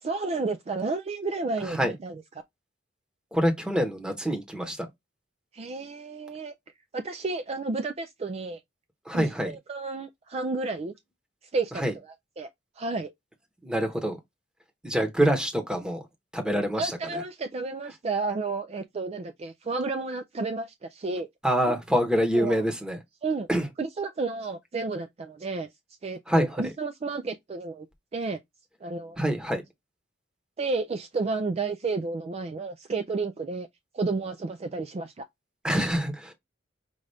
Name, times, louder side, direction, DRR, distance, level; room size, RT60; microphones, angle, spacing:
voice 1, 0.0-2.2 5.5-6.5 6.9-8.6 9.1-10.9 11.5-11.8 12.4-12.5 12.8-13.1 16.8-21.3 21.6-21.7 22.3-22.6 23.2-23.5 23.8-25.7 26.0-27.9 28.1-28.4 28.8-29.2 30.6-33.7 33.9-35.3, right 3 dB, 35° right, 0.4 m, -31 dB
voice 2, 3.3-4.9 9.1-9.5 11.8-11.9 13.6-14.2 14.8-16.1 16.3-17.2 21.4-23.0 23.5-23.7 26.3-26.7 29.2-29.6 35.6-36.3, equal, 5° right, 1.0 m, -26 dB
5.4 x 2.4 x 3.3 m
head